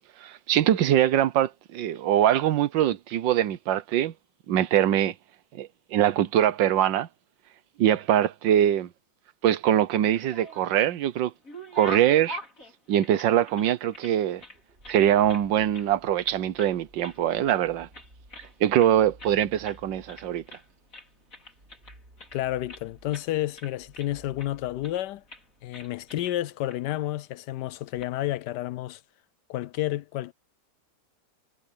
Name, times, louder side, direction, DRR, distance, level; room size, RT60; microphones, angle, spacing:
voice 1, 0.2-4.1 4.5-5.1 5.6-7.1 7.8-8.9 9.4-11.3 11.7-12.4 12.9-14.4 14.9-17.9 18.6-20.4, right 11 dB, 90° right, 1.6 m, -23 dB
sound 1, 10.0-10.8 11.2-14.1 14.4-15.5 15.7-15.9 16.2-16.8 17.0-17.6 17.9-18.9 19.2-19.4 19.6-19.8 20.1-20.7 20.9-22.8 23.1-23.3 23.5-24.5 24.8-25.0 25.3-25.4 25.7-26.3 26.7-26.8 27.7-28.1, left 2 dB, 45° left, 5.2 m, -44 dB
sound 2, 14.5-26.1, right 1 dB, 30° right, 6.8 m, -56 dB
voice 2, 22.3-25.2 25.6-29.0 29.5-30.3, left 14 dB, 75° left, 1.2 m, -30 dB
omnidirectional pair, 1.9 m